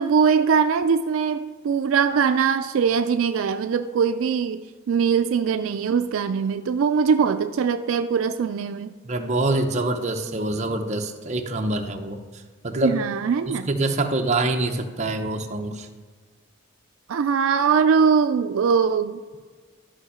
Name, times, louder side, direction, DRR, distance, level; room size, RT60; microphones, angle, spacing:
voice 1, 0.0-4.6 4.9-8.9 12.8-13.7 17.1-19.2, right 6 dB, 75° right, 9 dB, 0.4 m, -21 dB
voice 2, 9.0-12.2 12.6-13.0 13.5-15.9, right 2 dB, 35° right, 3 dB, 0.8 m, -25 dB
12.5 x 5.4 x 5.0 m, 1.5 s
head